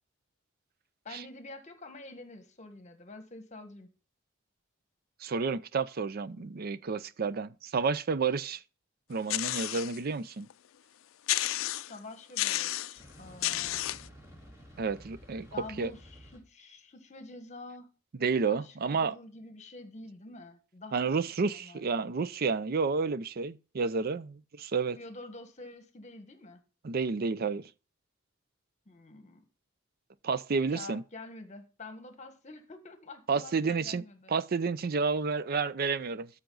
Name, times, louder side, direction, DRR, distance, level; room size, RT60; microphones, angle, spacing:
voice 1, 1.0-3.9 11.9-13.9 15.5-17.9 18.5-22.1 24.9-26.6 28.9-29.4 30.5-34.3, left 2 dB, 35° left, 1.4 m, -47 dB
voice 2, 5.2-8.6 9.1-10.5 14.8-15.5 15.8-15.9 18.2-19.1 20.9-25.0 26.8-27.6 30.2-31.0 33.3-36.3, right 4 dB, 50° right, 0.5 m, -30 dB
sound 1, 9.3-10.0 10.5-10.6 11.3-12.0 12.4-13.0 13.4-14.1, left 15 dB, 85° left, 0.4 m, -31 dB
sound 2, 13.0-16.4, equal, 20° right, 2.8 m, -52 dB
12.5 x 5.9 x 3.9 m
head